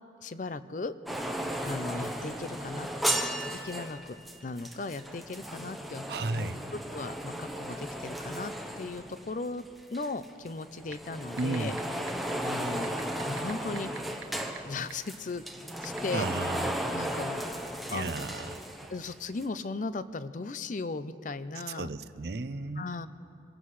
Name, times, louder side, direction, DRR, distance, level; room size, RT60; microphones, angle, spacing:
voice 1, 0.2-0.9 1.7-4.2 4.4-6.0 6.3-6.5 6.9-9.6 9.9-11.8 12.4-12.9 13.3-13.9 14.7-15.4 15.8-16.3 16.9-17.4 17.9-18.1 18.9-21.9 22.8-23.1, left 3 dB, 45° left, 13 dB, 0.5 m, -37 dB
sound 1, 1.1-9.7 9.9-19.1 19.4-19.5, right 1 dB, ahead, 0.8 m, -35 dB
voice 2, 6.1-6.6 11.4-11.8 16.1-16.7 17.9-18.5 21.7-22.9, right 3 dB, 60° right, 13 dB, 0.5 m, -33 dB
sound 2, 10.9-11.0 11.4-11.8 12.1-12.2 12.8-14.6 14.9-15.0 15.8-16.0, right 6 dB, 80° right, 1.3 m, -40 dB
25.0 x 16.0 x 3.2 m, 2.6 s
head